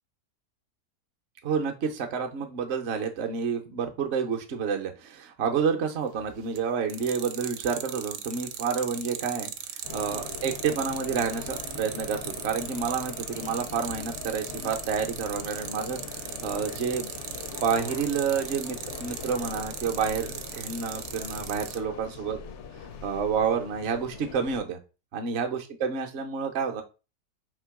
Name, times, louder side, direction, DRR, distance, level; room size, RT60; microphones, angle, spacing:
voice 1, 1.4-9.5 9.9-16.0 16.4-17.1 17.6-22.4 23.0-24.8 25.1-26.8, right 6 dB, 55° right, 4 dB, 0.8 m, -29 dB
sound 1, 6.2-6.6 6.9-21.8, right 10 dB, 80° right, 1.1 m, -37 dB
sound 2, 9.8-24.6, left 7 dB, 70° left, 0.7 m, -41 dB
3.7 x 2.8 x 4.6 m, 0.31 s
omnidirectional pair, 1.8 m